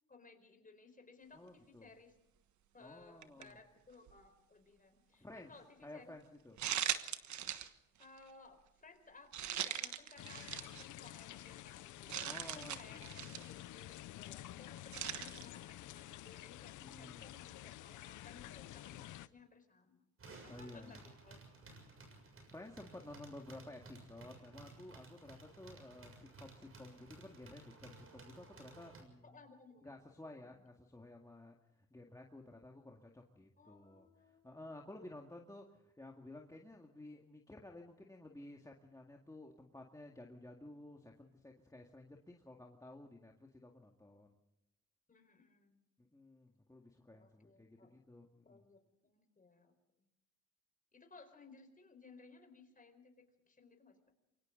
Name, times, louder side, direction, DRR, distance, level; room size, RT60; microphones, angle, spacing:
voice 1, 0.1-2.2 2.7-6.4 8.0-13.1 13.5-20.1 20.4-21.4 29.2-29.9 30.2-30.6 33.6-34.4 45.1-45.8 47.1-47.9 48.4-50.1 50.9-54.0, left 4 dB, 25° left, 6 dB, 4.6 m, -60 dB
voice 2, 1.3-1.9 2.8-3.6 5.1-5.5 5.8-6.6 12.2-13.4 16.8-17.3 20.5-21.0 22.5-29.4 29.8-44.3 46.1-48.6, left 2 dB, 10° left, 1 dB, 2.0 m, -54 dB
sound 1, 3.2-3.5 4.1-4.2 6.6-7.7 8.0-8.2 9.3-10.8 11.4-11.5 12.1-13.5 14.9-15.5, right 10 dB, 70° right, 1.4 m, -40 dB
sound 2, 10.2-19.3, left 15 dB, 80° left, 0.7 m, -50 dB
sound 3, 20.2-29.0, right 3 dB, 45° right, 6.8 m, -57 dB
28.0 x 23.5 x 3.9 m, 0.90 s
cardioid pair, 90°, 30 cm